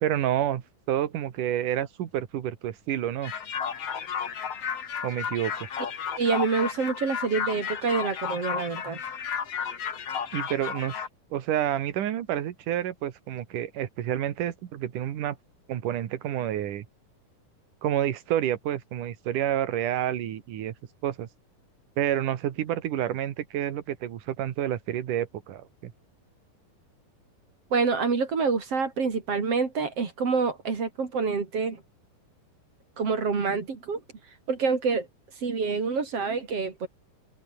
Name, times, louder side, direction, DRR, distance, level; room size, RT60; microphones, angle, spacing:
voice 1, 0.0-0.6 0.9-3.3 5.0-5.7 10.3-11.0 11.3-15.4 15.7-16.9 17.8-20.7 21.0-21.3 22.0-25.9, right 11 dB, 70° right, 3.1 m, -29 dB
sound 1, 3.2-11.1, left 7 dB, 50° left, 3.1 m, -33 dB
voice 2, 6.2-9.0 27.7-31.8 33.0-34.0 34.5-35.1 35.4-36.9, right 5 dB, 45° right, 4.0 m, -27 dB
omnidirectional pair, 3.9 m